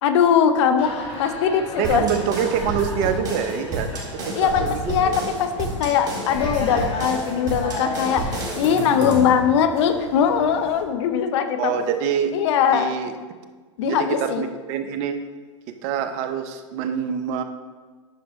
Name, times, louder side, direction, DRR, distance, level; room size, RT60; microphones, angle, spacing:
voice 1, 0.0-2.2 4.3-11.7 12.3-12.9 13.8-14.5, left 7 dB, 60° left, 8 dB, 0.7 m, -21 dB
sound 1, 0.8-10.8, left 2 dB, 35° left, 1.8 m, -35 dB
sound 2, 1.8-9.4, right 1 dB, 25° right, 2.1 m, -30 dB
voice 2, 1.8-5.1 11.6-12.4 12.7-13.1 13.8-15.2 15.8-17.4, right 8 dB, 45° right, 8 dB, 0.7 m, -25 dB
9.8 x 6.0 x 3.1 m, 1.4 s
hypercardioid pair, 105°, 16 cm